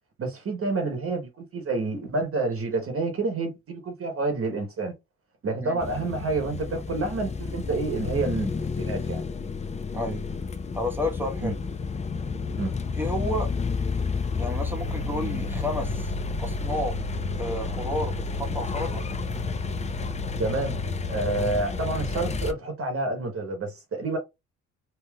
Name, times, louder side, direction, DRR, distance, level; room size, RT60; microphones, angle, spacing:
voice 1, 0.2-4.9 5.4-9.2 11.4-11.5 12.6-12.7 20.4-20.8 21.1-24.2, right 3 dB, 45° right, 1.1 m, -28 dB
sound 1, 5.8-22.5, left 4 dB, 25° left, 0.5 m, -30 dB
voice 2, 9.9-10.2 10.7-11.6 12.9-13.5 14.3-17.0 17.4-19.0, left 1 dB, 5° right, 1.1 m, -31 dB
3.5 x 2.7 x 2.3 m
cardioid pair, 90°, 30 cm